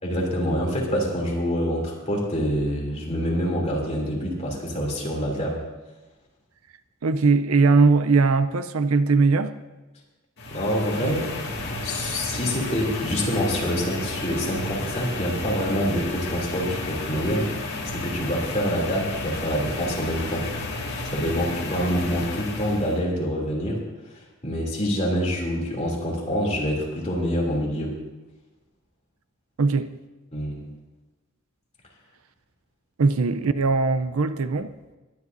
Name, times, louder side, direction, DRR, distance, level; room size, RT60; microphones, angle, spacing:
voice 1, 0.0-5.6 10.5-11.2 11.8-17.5 17.8-20.5 21.1-23.8 24.1-27.9 30.3-30.6, equal, 30° left, 2.9 m, -26 dB
voice 2, 7.0-9.5 11.0-11.2 29.6-29.9 33.0-34.7, right 4 dB, 75° right, 0.6 m, -20 dB
sound 1, 10.4-23.0, left 2 dB, 50° left, 2.0 m, -32 dB
21.5 x 11.0 x 2.6 m
head